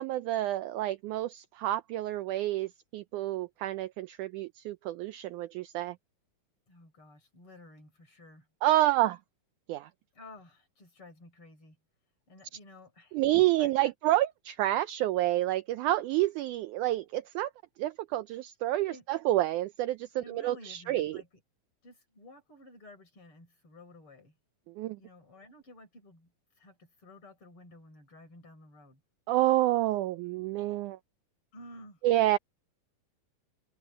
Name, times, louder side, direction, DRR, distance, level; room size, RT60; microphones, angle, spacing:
voice 1, 0.0-6.0 8.6-9.2 9.7-9.9 13.1-17.5 17.8-21.2 24.7-25.0 29.3-31.0 32.0-32.4, right 15 dB, 90° right, 1.7 m, -29 dB
voice 2, 6.7-8.5 10.1-11.8 12.3-13.9 18.9-19.0 20.2-21.3 21.8-24.4 25.0-26.3 26.6-29.0 31.5-32.0, left 2 dB, 35° left, 7.4 m, -53 dB
omnidirectional pair, 4.1 m